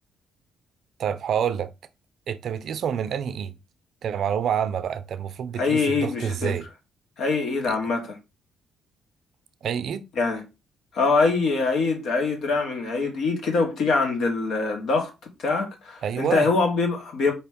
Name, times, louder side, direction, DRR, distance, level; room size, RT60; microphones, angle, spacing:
voice 1, 1.0-1.7 2.3-3.5 4.0-6.7 7.7-7.8 9.6-10.1 16.0-16.5, right 8 dB, 65° right, 0.5 m, -27 dB
voice 2, 5.6-6.6 7.2-8.2 10.2-10.4 10.9-15.1 15.4-17.3, left 4 dB, 75° left, 1.3 m, -24 dB
4.3 x 3.0 x 3.5 m
cardioid pair, 90°, 0 cm